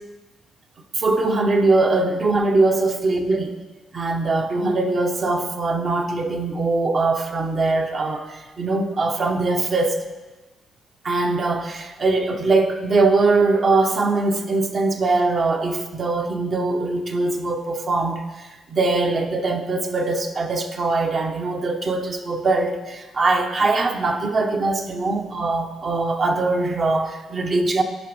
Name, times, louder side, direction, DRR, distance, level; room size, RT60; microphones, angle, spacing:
voice 1, 0.9-3.5 3.9-10.0 11.0-27.8, right 3 dB, 40° right, 5 dB, 0.8 m, -22 dB
11.0 x 5.2 x 3.1 m, 1.2 s
cardioid pair, 90°, 0 cm